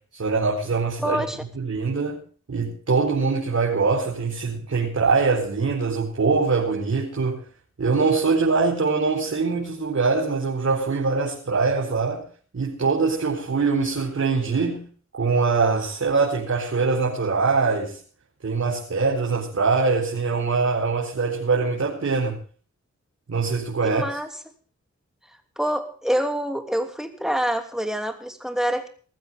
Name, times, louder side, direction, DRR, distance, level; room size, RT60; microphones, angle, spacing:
voice 1, 0.1-1.2 1.6-2.2 2.5-7.4 7.8-12.2 12.5-14.9 15.2-18.0 18.4-22.4 23.3-24.1, right 4 dB, 55° right, 4.4 m, -23 dB
voice 2, 1.0-1.4 23.8-24.3 25.6-28.9, equal, ahead, 2.9 m, -26 dB
20.0 x 14.5 x 3.7 m
wide cardioid pair, 90°, 29 cm